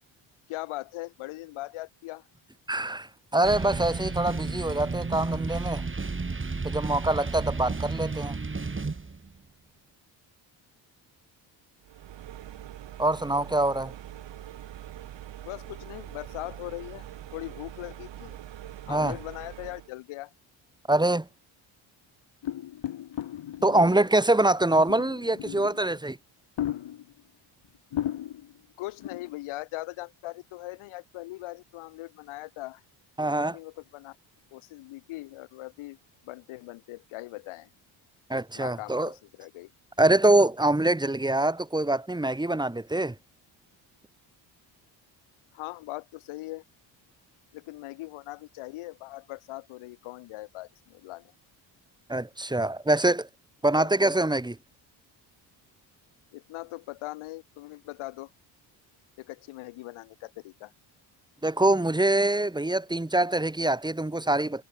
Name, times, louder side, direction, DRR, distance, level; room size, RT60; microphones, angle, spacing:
voice 1, 0.5-2.3 15.4-18.4 18.9-20.3 28.8-32.8 33.2-34.2 34.5-36.0 36.2-37.7 38.5-39.7 45.5-46.6 47.5-51.3 53.7-53.9 56.3-58.3 59.2-60.7, left 19 dB, 90° left, 4.9 m, -40 dB
voice 2, 2.7-5.8 6.6-8.4 13.0-13.9 18.9-19.2 20.9-21.3 23.6-26.2 33.2-33.6 38.3-39.1 40.0-43.1 52.1-53.3 53.6-54.6 61.4-64.6, right 2 dB, 10° right, 2.1 m, -24 dB
sound 1, 3.4-9.4, right 4 dB, 25° right, 5.8 m, -32 dB
sound 2, 11.8-19.9, right 12 dB, 65° right, 2.1 m, -43 dB
sound 3, 22.4-24.2 24.9-26.0 26.6-27.2 27.6-27.7 27.9-28.6 29.0-29.3, left 12 dB, 65° left, 3.6 m, -35 dB
cardioid pair, 80°, 47 cm